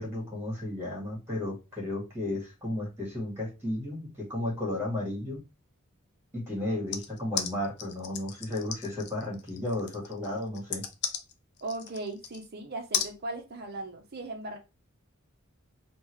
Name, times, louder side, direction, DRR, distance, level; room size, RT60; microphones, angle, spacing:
voice 1, 0.0-5.4 6.3-10.8, left 1 dB, 10° right, 1.6 m, -33 dB
sound 1, 6.9-12.5 12.9-13.1, left 8 dB, 50° left, 0.5 m, -35 dB
voice 2, 11.6-14.6, right 2 dB, 50° right, 0.8 m, -38 dB
3.7 x 2.4 x 3.0 m
head